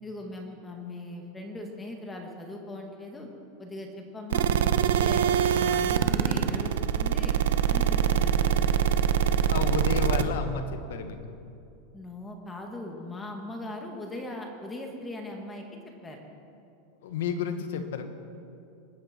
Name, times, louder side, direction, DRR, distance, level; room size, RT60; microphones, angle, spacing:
voice 1, 0.0-3.3 3.6-5.2 5.5-7.4 7.7-8.5 11.9-16.2, left 1 dB, 15° left, 2 dB, 2.1 m, -39 dB
sound 1, 4.3-10.2, right 9 dB, 85° right, 0.9 m, -24 dB
voice 2, 9.2-11.2 17.0-18.1, left 6 dB, 80° left, 8 dB, 1.6 m, -32 dB
24.5 x 11.5 x 4.6 m, 2.6 s
supercardioid pair, 130°, 0 cm